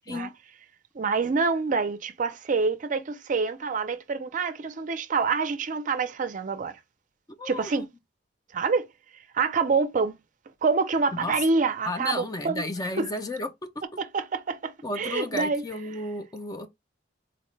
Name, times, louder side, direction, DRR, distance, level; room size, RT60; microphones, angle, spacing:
voice 1, 0.9-6.8 7.5-7.9 8.5-8.9 9.3-10.2 10.6-12.6 13.0-13.1 14.0-15.6, right 4 dB, 45° right, 0.4 m, -26 dB
voice 2, 7.3-7.9 11.2-11.3 11.8-13.5 14.8-16.7, left 2 dB, 20° left, 0.4 m, -33 dB
4.0 x 2.1 x 3.1 m
head